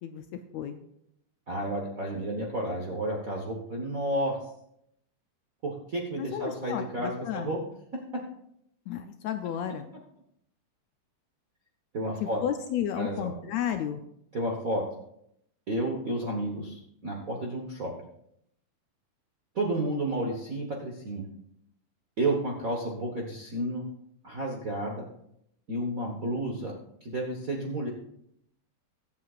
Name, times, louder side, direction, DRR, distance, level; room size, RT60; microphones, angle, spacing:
voice 1, 0.0-0.8 6.2-7.6 8.9-9.9 12.2-14.0, left 9 dB, 75° left, 7 dB, 1.7 m, -33 dB
voice 2, 1.5-4.4 5.6-7.6 11.9-12.4 13.0-13.3 14.3-14.8 15.7-17.9 19.5-21.3 22.2-23.8 24.2-25.1 25.7-26.7 27.0-27.9, right 1 dB, 70° right, -1 dB, 0.8 m, -31 dB
22.5 x 7.6 x 2.4 m, 0.76 s
omnidirectional pair, 3.5 m